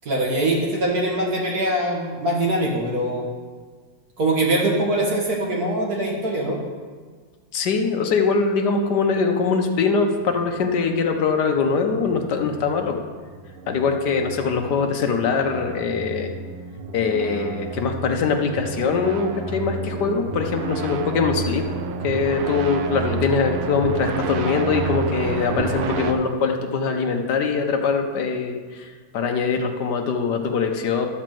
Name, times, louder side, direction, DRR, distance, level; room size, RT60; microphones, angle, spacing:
voice 1, 0.1-3.3 4.2-6.6, right 1 dB, 45° right, -2 dB, 1.9 m, -22 dB
voice 2, 7.5-13.0 13.7-16.3 16.9-21.6 22.0-31.1, left 5 dB, 60° left, 4 dB, 1.3 m, -22 dB
sound 1, 11.6-26.1, right 4 dB, 80° right, 1.6 m, -30 dB
12.5 x 4.3 x 7.6 m, 1.5 s
omnidirectional pair, 2.3 m